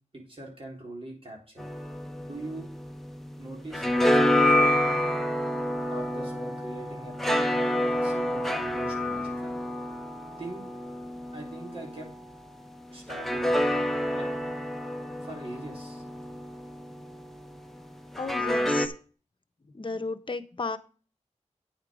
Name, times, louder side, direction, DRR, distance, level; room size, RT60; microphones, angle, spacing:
voice 1, 0.1-1.6 2.3-2.7 3.4-5.0 5.9-9.6 10.4-10.6 11.3-12.1 12.9-13.6 14.1-14.3 15.2-16.0, right 1 dB, 50° right, -2 dB, 3.6 m, -42 dB
sound 1, 1.6-3.3 3.5-12.2 13.1-17.2 18.1-18.9, left 1 dB, ahead, 1.0 m, -28 dB
voice 2, 18.2-18.9 19.7-20.8, left 3 dB, 40° left, 9 dB, 0.9 m, -33 dB
9.2 x 7.4 x 5.0 m, 0.37 s
wide cardioid pair, 90°, 12 cm